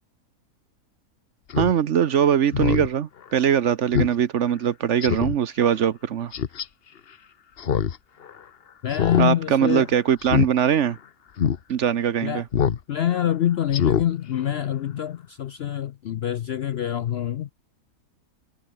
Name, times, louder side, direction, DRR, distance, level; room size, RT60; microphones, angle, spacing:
Speech synthesizer, 1.5-1.7 2.1-2.2 2.5-2.9 3.3-3.4 3.9-4.1 4.5-4.6 5.0-5.4 6.3-6.6 7.6-8.0 8.2-8.3 8.9-9.3 9.5-9.8 10.2-10.5 10.9-11.0 11.4-11.6 12.5-12.8 13.1-13.3 13.7-14.0 14.4-14.5, left 8 dB, 45° left, 1.0 m, -23 dB
voice 1, 1.6-6.3 9.2-11.0 11.7-12.4, right 9 dB, 60° right, 1.0 m, -21 dB
voice 2, 8.8-9.9 12.2-12.4 12.9-17.5, left 11 dB, 65° left, 0.6 m, -25 dB
omnidirectional pair, 1.6 m